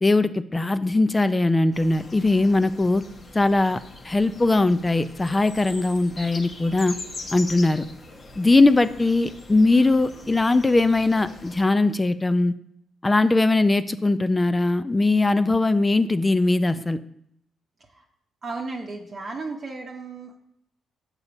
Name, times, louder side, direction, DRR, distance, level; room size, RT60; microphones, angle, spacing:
voice 1, 0.0-3.0 3.3-7.0 7.3-7.9 8.4-12.5 13.0-17.0, left 2 dB, 20° left, 13 dB, 0.3 m, -20 dB
sound 1, 1.7-11.6, left 2 dB, 40° left, 1.0 m, -42 dB
voice 2, 18.4-20.4, right 3 dB, 40° right, 0 dB, 0.8 m, -34 dB
6.7 x 4.1 x 5.9 m, 0.75 s
cardioid pair, 90°, 0 cm